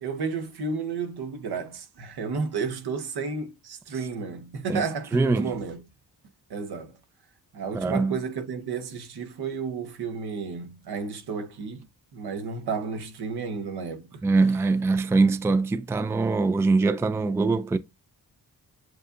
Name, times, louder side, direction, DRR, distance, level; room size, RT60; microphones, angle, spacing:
voice 1, 0.0-5.8 6.5-7.0 7.5-11.9 12.1-14.2, right 5 dB, 75° right, 1.1 m, -32 dB
voice 2, 5.1-5.5 7.7-8.2 14.2-17.8, right 3 dB, 5° right, 0.3 m, -23 dB
7.7 x 2.7 x 2.5 m
cardioid pair, 85°, 39 cm